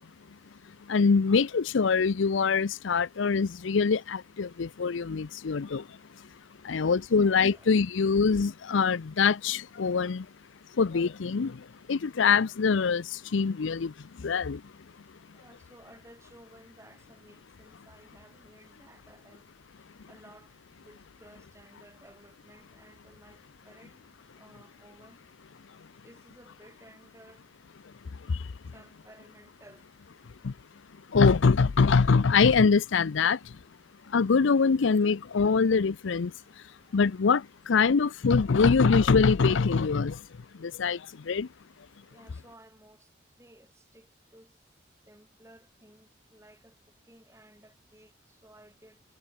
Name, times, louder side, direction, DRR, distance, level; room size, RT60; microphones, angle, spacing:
voice 1, 0.9-6.0 6.6-10.3 10.7-14.6 28.3-28.5 30.4-30.5 31.1-33.6 34.1-36.3 36.9-40.2 40.6-41.5, left 5 dB, 75° left, 0.5 m, -24 dB
voice 2, 6.7-7.8 15.3-25.2 26.0-27.4 28.7-30.4 36.3-37.1 41.2-41.3 42.1-44.6 45.1-49.0, right 1 dB, 15° right, 3.8 m, -57 dB
head